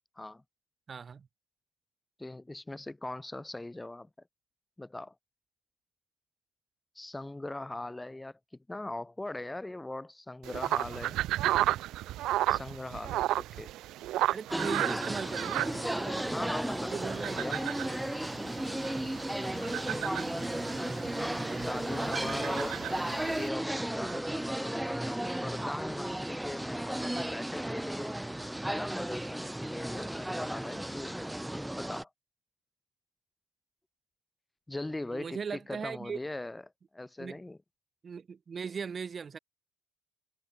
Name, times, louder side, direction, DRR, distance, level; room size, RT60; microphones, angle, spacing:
voice 1, 0.9-1.3 14.3-15.8 16.6-17.4 18.8-19.1 21.4-22.6 24.0-24.2 35.1-36.2 37.2-37.4 38.0-39.4, right 6 dB, 40° right, 2.9 m, -39 dB
voice 2, 2.2-4.1 4.8-5.1 7.0-8.4 8.7-11.2 12.5-13.7 16.3-17.7 21.6-22.8 23.3-28.2 28.7-32.1 34.7-36.6 36.9-37.6, left 2 dB, 10° left, 2.1 m, -40 dB
sound 1, 10.4-23.5, right 15 dB, 70° right, 0.7 m, -34 dB
sound 2, 14.5-32.0, right 1 dB, 5° right, 0.3 m, -34 dB
supercardioid pair, 70°, 0 cm